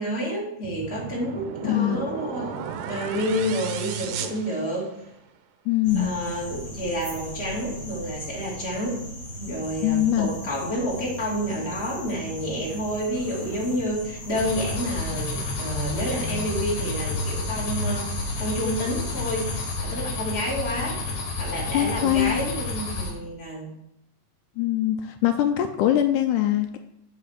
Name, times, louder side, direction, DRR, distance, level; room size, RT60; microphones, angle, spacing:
voice 1, 0.0-4.9 6.0-9.0 9.4-21.0 21.3-23.7, equal, 20° left, -4 dB, 2.4 m, -29 dB
sound 1, 0.6-5.2, right 7 dB, 75° right, 1.9 m, -34 dB
voice 2, 1.6-2.0 5.7-6.1 9.8-10.3 21.7-22.4 24.6-26.8, left 12 dB, 90° left, 7 dB, 1.7 m, -22 dB
sound 2, 5.8-19.8, equal, 35° left, 5.1 m, -37 dB
sound 3, 14.4-23.1, left 3 dB, 65° left, 3.0 m, -31 dB
9.2 x 5.0 x 6.5 m, 0.81 s
omnidirectional pair, 4.2 m